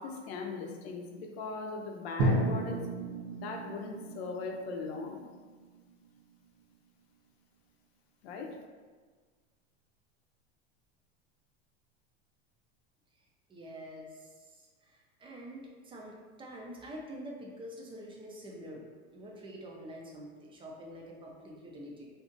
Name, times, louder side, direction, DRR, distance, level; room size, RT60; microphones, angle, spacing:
voice 1, 0.0-2.9 3.3-5.3 8.2-8.6, left 4 dB, 75° left, 2 dB, 0.7 m, -39 dB
Drum, 2.2-6.2, right 1 dB, 85° right, 0.8 m, -33 dB
voice 2, 13.5-14.3 14.6-14.7 15.2-18.8 19.1-22.1, equal, 15° right, -1 dB, 0.5 m, -46 dB
2.6 x 2.4 x 3.8 m, 1.4 s
supercardioid pair, 125°, 32 cm